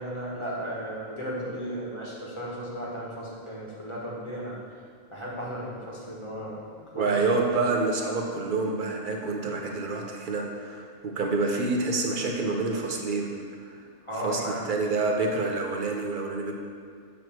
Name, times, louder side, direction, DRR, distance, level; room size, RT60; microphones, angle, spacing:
voice 1, 0.0-4.6 5.1-6.6 6.9-7.5 14.0-14.6, equal, 25° left, -5 dB, 1.3 m, -35 dB
voice 2, 6.9-13.3 13.6-13.8 14.2-16.5, right 3 dB, 45° right, 1 dB, 0.8 m, -27 dB
7.1 x 3.1 x 6.0 m, 2.2 s
omnidirectional pair, 1.3 m